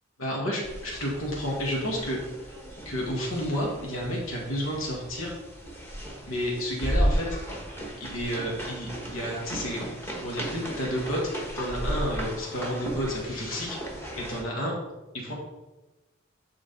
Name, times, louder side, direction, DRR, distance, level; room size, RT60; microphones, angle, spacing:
voice 1, 0.2-2.2 2.8-5.3 6.3-7.3 7.9-9.8 10.2-11.2 11.5-13.8 14.2-14.7 15.1-15.3, equal, 90° left, -2 dB, 1.7 m, -31 dB
sound 1, 0.6-14.4, right 1 dB, 10° left, 1.3 m, -34 dB
10.5 x 3.9 x 4.0 m, 1.1 s
head